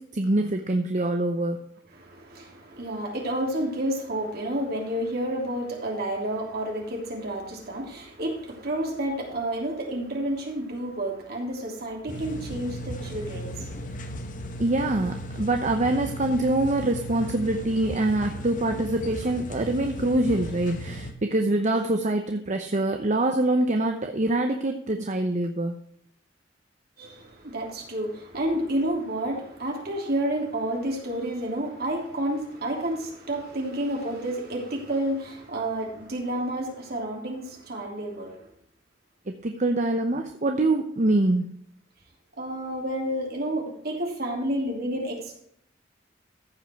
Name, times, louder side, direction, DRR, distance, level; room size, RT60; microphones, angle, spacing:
voice 1, 0.0-1.6 14.6-25.8 39.3-41.4, right 2 dB, 40° right, 0.9 m, -25 dB
voice 2, 1.9-13.7 27.0-38.4 42.4-45.4, right 1 dB, 60° right, 3.2 m, -30 dB
sound 1, 12.1-21.1, equal, 45° left, 1.2 m, -36 dB
15.0 x 5.4 x 4.6 m
head